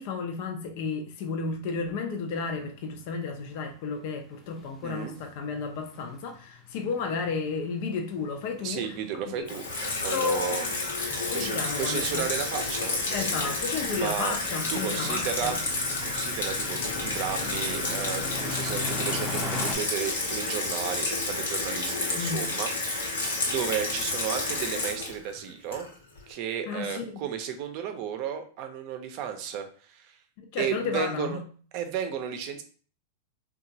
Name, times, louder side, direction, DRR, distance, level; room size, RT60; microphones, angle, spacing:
voice 1, 0.0-8.9 9.4-9.5 10.1-10.7 11.3-12.3 13.1-15.6 22.1-22.5 26.7-27.2 30.5-31.4, left 5 dB, 55° left, 3 dB, 0.5 m, -32 dB
sound 1, 2.6-2.7 3.0-3.2 3.6-3.7 3.9-19.8, left 2 dB, 10° left, 0.6 m, -41 dB
voice 2, 4.8-5.1 8.6-10.7 11.3-13.2 13.9-14.3 14.7-15.6 16.0-25.9 26.3-30.2 30.6-31.4 31.7-32.6, right 8 dB, 50° right, 7 dB, 0.5 m, -33 dB
Water tap faucet / Sink (filling or washing), 9.5-26.2, left 3 dB, 90° left, 0.9 m, -30 dB
2.9 x 2.3 x 2.7 m, 0.42 s
hypercardioid pair, 120°, 0 cm